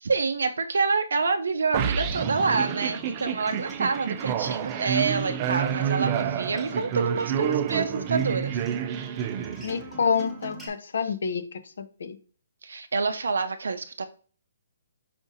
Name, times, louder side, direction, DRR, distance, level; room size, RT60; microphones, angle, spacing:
voice 1, 0.0-8.6 11.0-11.1 12.6-14.0, right 4 dB, 85° right, 0.4 m, -27 dB
sound 1, 1.7-10.0, right 9 dB, 25° right, 0.3 m, -29 dB
Acoustic guitar, 2.7-10.7, right 2 dB, ahead, 0.8 m, -42 dB
voice 2, 9.6-12.2, left 6 dB, 65° left, 0.6 m, -28 dB
5.0 x 3.9 x 2.6 m
hypercardioid pair, 165°, 0 cm